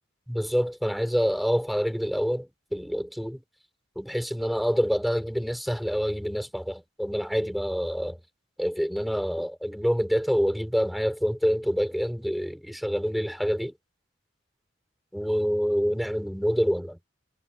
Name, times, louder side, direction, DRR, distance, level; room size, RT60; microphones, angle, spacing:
voice 1, 0.3-3.4 4.0-8.2 8.6-13.7 15.1-17.0, equal, ahead, 4.5 m, -27 dB
head